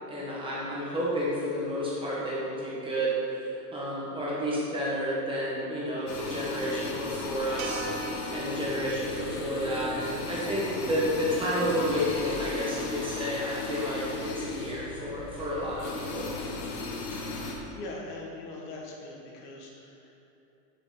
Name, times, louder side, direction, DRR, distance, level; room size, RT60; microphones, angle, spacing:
voice 1, 0.1-16.3, equal, 10° right, -7 dB, 1.4 m, -31 dB
sound 1, 6.1-17.6, left 3 dB, 85° left, 1.7 m, -36 dB
sound 2, 7.6-11.9, right 5 dB, 60° right, 1.0 m, -43 dB
voice 2, 17.7-20.2, left 2 dB, 70° left, -2 dB, 2.1 m, -41 dB
11.0 x 5.9 x 4.0 m, 2.8 s
supercardioid pair, 160°, 47 cm